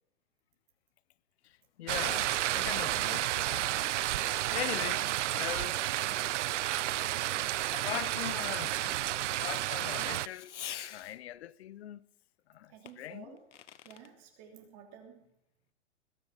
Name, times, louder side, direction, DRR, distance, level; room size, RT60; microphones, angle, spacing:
Fireworks, 1.5-11.4 12.9-14.1, left 10 dB, 85° left, 1.1 m, -52 dB
voice 1, 1.8-3.8 4.5-5.0 5.3-5.8 7.7-8.9 9.4-10.5 10.9-12.0 12.5-13.4, left 13 dB, 65° left, 0.8 m, -40 dB
sound 1, 1.9-10.3, right 14 dB, 85° right, 0.5 m, -31 dB
voice 2, 4.6-5.3 5.6-6.6 6.9-9.3 12.7-13.4 13.8-15.2, right 7 dB, 40° right, 3.2 m, -52 dB
21.0 x 10.0 x 6.6 m
hypercardioid pair, 150°, 35 cm